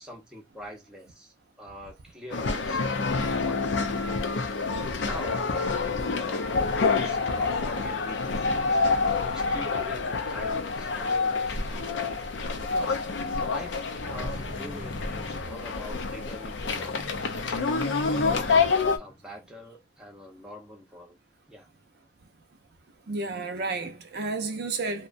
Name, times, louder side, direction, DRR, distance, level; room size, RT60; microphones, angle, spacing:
voice 1, 0.0-8.8 9.2-21.2 21.5-21.7, equal, 5° right, 0.6 m, -45 dB
sound 1, 2.3-19.0, left 4 dB, 70° left, 0.5 m, -27 dB
sound 2, 13.9-16.3 16.6-19.1, left 1 dB, 45° left, 0.8 m, -40 dB
voice 2, 23.1-25.1, right 3 dB, 55° right, 0.5 m, -31 dB
2.7 x 2.1 x 2.5 m
head